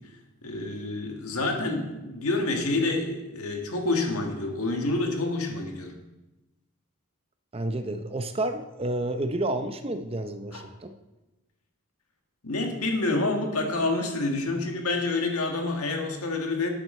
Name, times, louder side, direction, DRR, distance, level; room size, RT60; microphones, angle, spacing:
voice 1, 0.4-5.9 10.5-10.6 12.4-16.7, left 2 dB, 90° left, 3 dB, 1.7 m, -28 dB
voice 2, 7.5-10.9, right 1 dB, 25° right, 8 dB, 0.6 m, -30 dB
12.0 x 8.0 x 4.3 m, 1.0 s
head